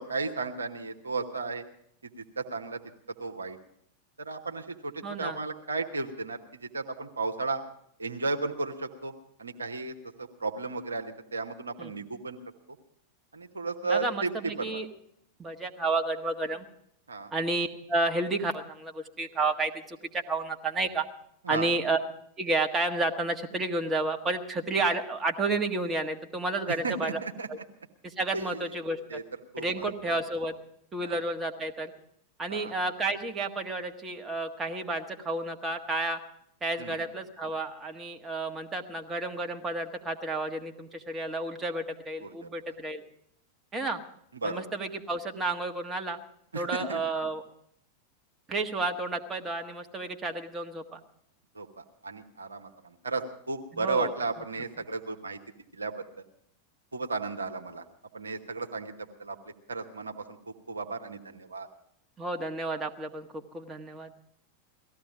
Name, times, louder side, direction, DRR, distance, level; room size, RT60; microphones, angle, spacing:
voice 1, 0.0-1.6 2.0-2.8 3.2-3.6 4.2-7.6 8.0-9.1 9.4-12.4 13.3-14.8 17.1-17.3 21.5-21.7 26.8-27.5 28.3-28.5 29.1-29.2 29.5-30.2 31.0-31.2 32.5-32.7 36.8-37.0 42.2-42.5 44.4-44.6 46.5-47.0 51.5-55.4 55.7-55.9 56.9-57.8 58.1-59.4 59.7-61.7, right 3 dB, 75° right, 5 dB, 1.1 m, -34 dB
voice 2, 5.0-5.4 11.8-11.9 13.8-14.9 15.4-16.6 17.3-21.1 21.5-22.0 22.4-27.2 27.5-27.6 28.0-29.2 29.6-30.5 30.9-31.9 32.4-36.2 36.6-43.0 43.7-44.0 44.4-46.2 46.5-47.4 48.5-51.0 53.7-54.1 62.2-64.1, right 2 dB, 15° right, 4 dB, 1.4 m, -31 dB
18.0 x 14.5 x 5.0 m, 0.71 s
figure-of-eight pair, 90°, 0 cm